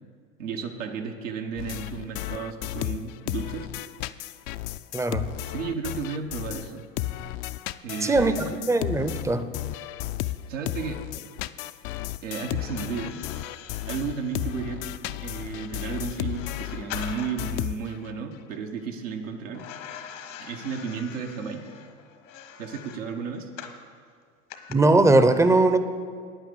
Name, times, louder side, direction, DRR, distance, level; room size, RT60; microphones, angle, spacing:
voice 1, 0.4-3.7 5.4-6.9 7.8-8.8 10.3-11.0 12.2-13.2 13.9-19.7 20.4-21.8 22.6-23.5, right 6 dB, 85° right, 3 dB, 1.2 m, -33 dB
sound 1, 1.6-6.7 7.0-18.1, left 15 dB, 55° left, 0.5 m, -33 dB
voice 2, 4.9-5.3 8.0-9.5 24.7-25.8, right 2 dB, 10° right, 11 dB, 0.6 m, -20 dB
sound 2, 12.5-17.6 19.5-23.8 24.5-24.7, left 8 dB, 75° left, 1.3 m, -44 dB
9.4 x 8.8 x 6.8 m, 2.1 s
hypercardioid pair, 95°, 38 cm